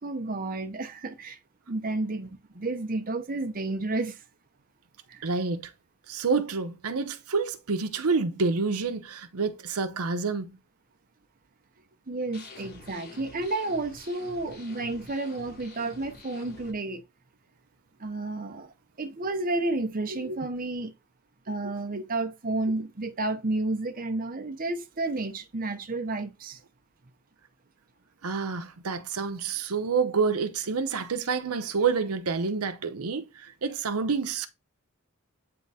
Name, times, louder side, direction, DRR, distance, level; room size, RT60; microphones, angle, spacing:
voice 1, 0.0-1.4 1.7-4.2 5.1-5.3 12.1-17.0 18.0-20.9 21.5-26.6, right 2 dB, 40° right, 0.8 m, -31 dB
voice 2, 5.2-5.7 6.1-10.6 20.2-20.4 22.0-22.1 28.2-34.5, right 4 dB, 90° right, 0.8 m, -28 dB
sound 1, 12.3-16.7, left 2 dB, 45° left, 2.6 m, -48 dB
8.5 x 3.7 x 4.1 m
head